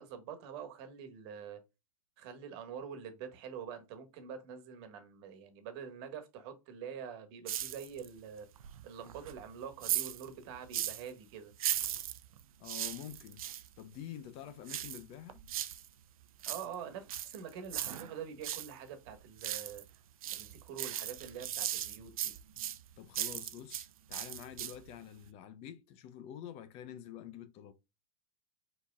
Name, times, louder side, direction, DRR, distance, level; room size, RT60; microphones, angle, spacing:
voice 1, 0.0-1.6 2.2-8.5 8.8-11.5 16.4-19.8 20.3-22.3, right 7 dB, 50° right, 1.4 m, -45 dB
sound 1, 7.5-8.2 8.6-11.1 11.5-13.7 14.7-15.9 16.2-18.7 19.1-19.9 20.2-23.9 24.1-24.9 25.3-25.4, right 11 dB, 80° right, 0.6 m, -38 dB
voice 2, 12.6-13.4 13.8-15.4 23.0-27.7, left 10 dB, 35° left, 0.6 m, -47 dB
5.0 x 4.1 x 2.3 m
hypercardioid pair, 130°, 18 cm